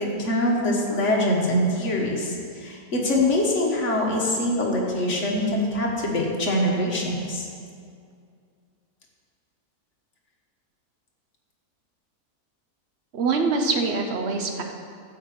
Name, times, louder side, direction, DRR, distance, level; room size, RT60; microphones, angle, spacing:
voice 1, 0.0-7.5, left 1 dB, 50° left, -2 dB, 1.9 m, -24 dB
voice 2, 13.1-14.6, right 4 dB, 50° right, 4 dB, 1.1 m, -24 dB
12.0 x 5.0 x 7.6 m, 2.3 s
omnidirectional pair, 1.7 m